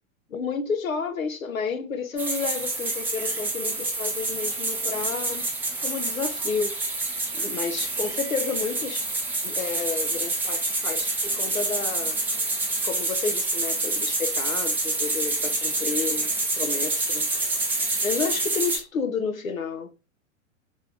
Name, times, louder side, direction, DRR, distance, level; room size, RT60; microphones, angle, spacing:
voice 1, 0.3-5.4 5.8-6.8 7.3-9.1 9.4-12.2 12.8-17.3 17.8-19.9, left 5 dB, 85° left, 0.5 m, -31 dB
sound 1, 2.2-18.8, right 2 dB, 5° right, 0.4 m, -27 dB
3.5 x 3.2 x 2.5 m
figure-of-eight pair, 100°, 40 cm